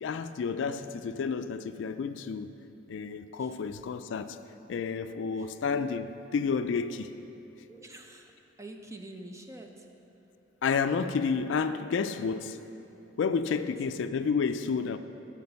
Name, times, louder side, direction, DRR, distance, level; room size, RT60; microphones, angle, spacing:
voice 1, 0.0-2.5 2.9-4.4 4.7-7.1 10.6-12.6 13.2-15.0, left 5 dB, 70° left, 11 dB, 0.3 m, -30 dB
voice 2, 7.7-8.3 8.6-9.9 13.5-13.7, right 1 dB, 15° right, 4 dB, 0.5 m, -46 dB
9.4 x 5.2 x 6.8 m, 2.9 s
head